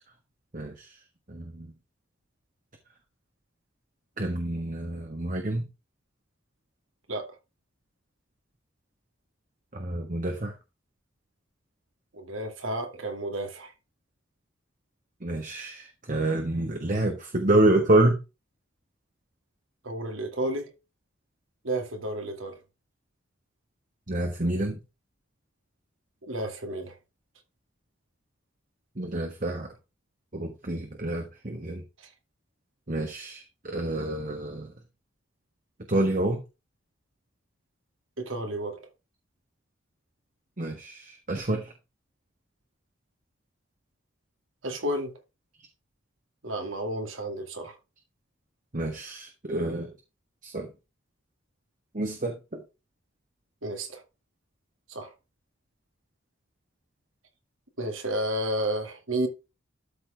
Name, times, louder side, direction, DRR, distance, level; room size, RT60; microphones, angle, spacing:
voice 1, 0.5-1.0 1.3-1.7 4.2-5.6 9.7-10.5 15.2-18.2 24.1-24.8 29.0-29.7 30.3-31.8 32.9-34.7 35.9-36.4 40.6-41.7 48.7-49.9 50.4-50.7 51.9-52.6, right 2 dB, 40° right, 1.4 m, -28 dB
voice 2, 12.1-13.7 19.8-20.7 21.6-22.6 26.2-26.9 38.2-38.8 44.6-45.1 46.4-47.7 53.6-54.0 54.9-55.1 57.8-59.3, right 1 dB, 80° right, 2.3 m, -31 dB
13.0 x 4.4 x 3.5 m
head